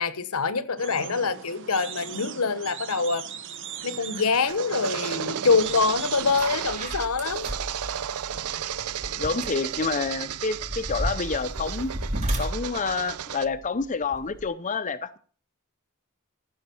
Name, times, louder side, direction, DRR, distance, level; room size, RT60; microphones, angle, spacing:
voice 1, 0.0-3.2 3.8-7.5, left 4 dB, 75° left, 1.1 m, -25 dB
sound 1, 0.8-6.5, right 7 dB, 60° right, 1.0 m, -39 dB
sound 2, 3.8-13.5, right 10 dB, 90° right, 0.5 m, -34 dB
sound 3, 5.7-5.8 6.2-14.5, right 1 dB, 35° right, 3.7 m, -34 dB
voice 2, 9.2-11.9 12.4-15.2, left 4 dB, 35° left, 0.6 m, -28 dB
14.0 x 6.4 x 7.0 m
head